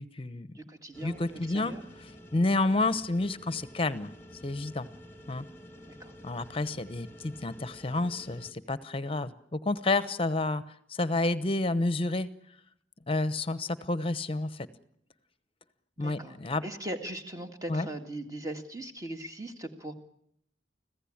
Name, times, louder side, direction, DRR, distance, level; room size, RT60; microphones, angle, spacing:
voice 1, 0.0-0.6 1.0-1.7 2.3-4.1 4.4-4.9 5.3-5.5 6.2-10.6 10.9-12.3 13.1-14.7 16.0-16.6 17.7-17.9, left 2 dB, 30° left, 15 dB, 1.0 m, -29 dB
voice 2, 0.5-1.8 6.0-6.1 16.0-16.4 16.6-19.9, right 1 dB, 20° right, 6 dB, 2.0 m, -39 dB
sound 1, 0.9-8.5, equal, 15° left, 1.6 m, -50 dB
25.5 x 15.5 x 8.7 m, 0.72 s
head